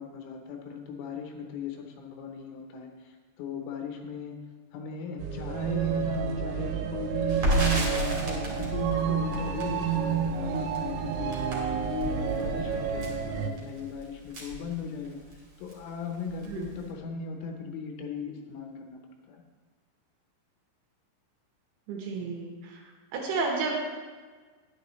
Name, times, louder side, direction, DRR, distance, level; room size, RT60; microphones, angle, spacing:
voice 1, 0.0-4.4 4.7-7.3 7.7-19.0 19.3-19.4, left 6 dB, 80° left, 3 dB, 3.2 m, -38 dB
sound 1, 5.2-13.5, right 7 dB, 90° right, 3.3 m, -30 dB
Crackle, 7.3-15.4 15.7-15.8 16.1-16.9, equal, 40° right, 2.6 m, -33 dB
voice 2, 21.9-22.8 23.1-23.8, right 4 dB, 70° right, 0 dB, 3.0 m, -31 dB
10.5 x 10.0 x 3.1 m, 1.5 s
omnidirectional pair, 5.8 m